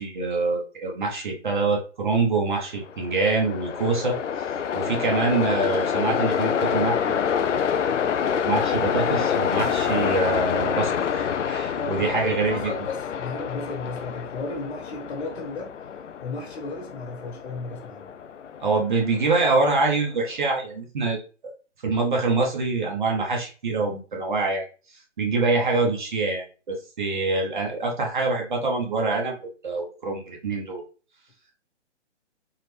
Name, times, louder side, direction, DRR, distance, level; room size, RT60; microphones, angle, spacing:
voice 1, 0.0-4.2 4.7-7.8 8.4-12.7 18.6-21.2 21.8-24.6 25.2-29.4 29.6-30.8, right 3 dB, 40° right, 1.2 m, -25 dB
Train, 2.8-20.0, left 7 dB, 80° left, 0.6 m, -27 dB
voice 2, 11.7-15.7 16.2-18.1, left 3 dB, 60° left, 1.8 m, -34 dB
4.2 x 2.6 x 3.4 m
hypercardioid pair, 170°, 36 cm